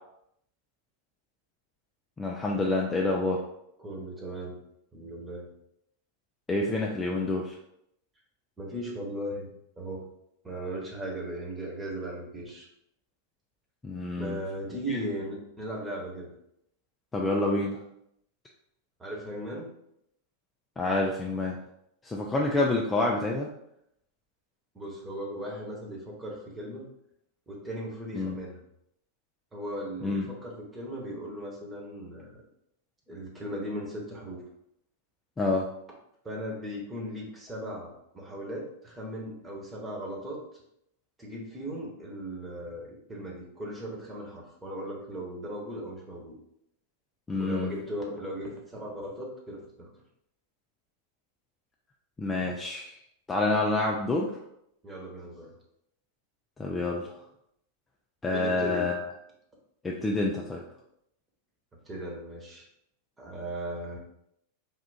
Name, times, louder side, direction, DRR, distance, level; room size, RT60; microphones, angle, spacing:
voice 1, 2.2-3.4 6.5-7.5 13.8-14.4 14.9-15.0 17.1-17.8 20.8-21.6 22.0-23.5 28.1-28.3 30.0-30.3 35.4-35.7 47.3-47.7 52.2-52.9 53.3-54.3 56.6-57.2 58.2-59.1 59.8-60.6, left 2 dB, 15° left, -2 dB, 0.4 m, -28 dB
voice 2, 3.8-4.6 4.9-5.5 8.6-9.5 9.8-10.0 10.4-12.7 14.2-16.3 19.0-19.7 24.7-26.9 27.5-28.6 29.5-32.3 33.1-34.4 36.2-40.4 41.2-46.3 47.3-49.9 54.8-55.5 58.3-58.9 61.9-62.6 63.2-64.0, right 1 dB, 15° right, -2 dB, 1.1 m, -37 dB
3.5 x 2.4 x 4.1 m, 0.76 s
figure-of-eight pair, 90°, 0 cm